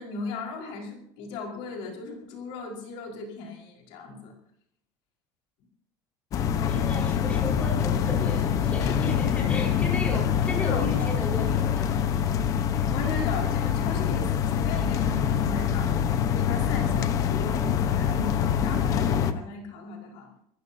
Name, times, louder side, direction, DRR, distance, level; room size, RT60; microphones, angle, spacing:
voice 1, 0.0-4.3 7.6-7.7 10.6-11.1 11.5-11.7 12.9-16.0 16.3-20.3, left 4 dB, 75° left, 0 dB, 5.1 m, -37 dB
sound 1, 6.3-19.3, left 8 dB, 40° left, 1.1 m, -25 dB
voice 2, 6.7-12.1, left 2 dB, 15° left, -2 dB, 4.9 m, -35 dB
27.0 x 15.5 x 2.8 m, 0.70 s
cardioid pair, 160°, 9 cm